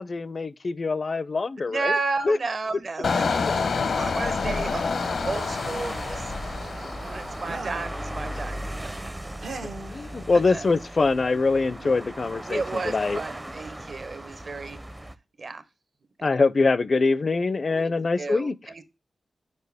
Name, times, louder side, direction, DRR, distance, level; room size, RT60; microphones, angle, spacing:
voice 1, 0.0-1.9 2.2-2.4 9.9-13.2 16.2-18.6, left 3 dB, 50° left, 0.4 m, -24 dB
voice 2, 1.7-4.9 5.2-6.3 6.6-8.9 10.5-10.6 12.5-14.8 15.4-15.6 16.2-16.3 17.7-17.9 18.2-18.8, right 3 dB, 55° right, 0.9 m, -33 dB
Engine, 3.0-7.7 8.1-8.4, left 5 dB, 80° left, 0.8 m, -28 dB
sound 1, 3.1-15.2, right 1 dB, 15° right, 0.5 m, -37 dB
sound 2, 7.4-8.0 9.4-9.9 11.3-11.4 11.8-12.1, right 3 dB, 80° right, 1.2 m, -38 dB
6.7 x 4.8 x 3.4 m
wide cardioid pair, 80°, 0 cm